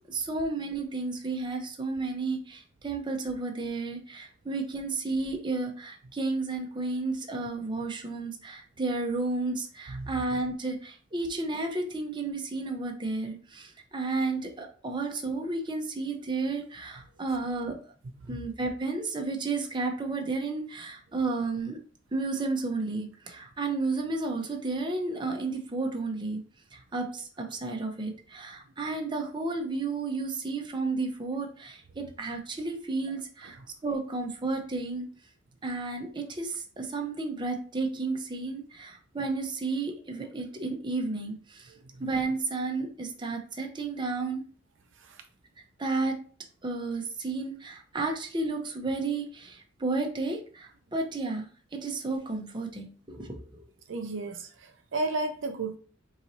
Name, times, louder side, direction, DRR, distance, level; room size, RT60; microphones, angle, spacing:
voice 1, 0.1-17.8 18.3-21.8 22.1-26.4 26.7-33.6 33.8-35.1 35.6-41.7 42.0-44.4 45.8-46.2 46.6-53.6, right 3 dB, 25° right, 0.8 m, -32 dB
voice 2, 9.9-10.2 18.2-18.4 33.4-33.6 41.7-42.1 45.0-45.2 53.9-55.8, right 2 dB, 70° right, 0.5 m, -34 dB
4.5 x 3.9 x 2.7 m
head